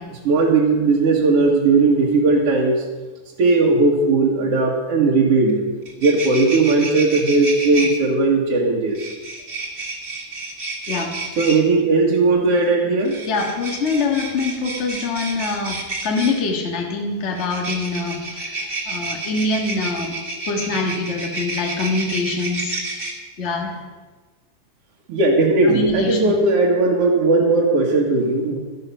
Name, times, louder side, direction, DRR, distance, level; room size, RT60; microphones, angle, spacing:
voice 1, 0.2-2.7 3.4-5.6 6.0-9.1 11.4-13.2 25.1-28.6, right 3 dB, 55° right, -3 dB, 2.0 m, -17 dB
sound 1, 5.5-5.6 5.8-7.9 8.9-11.6 13.0-16.4 17.3-23.1, right 3 dB, 25° right, 1.4 m, -30 dB
voice 2, 10.9-11.3 13.3-18.6 18.8-20.2 20.5-22.7 23.4-23.7 25.6-26.4, left 3 dB, 60° left, 1 dB, 0.7 m, -24 dB
12.0 x 11.5 x 5.6 m, 1.3 s
omnidirectional pair, 3.9 m